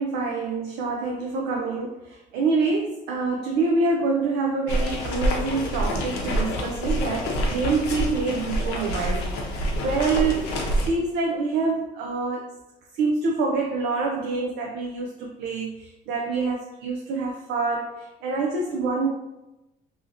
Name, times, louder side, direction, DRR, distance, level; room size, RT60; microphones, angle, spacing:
voice 1, 0.0-12.5 13.0-19.1, right 3 dB, 85° right, 0 dB, 0.4 m, -26 dB
sound 1, 4.7-10.9, equal, 85° left, 0.6 m, -27 dB
2.7 x 2.7 x 2.5 m, 0.97 s
cardioid pair, 110°, 17 cm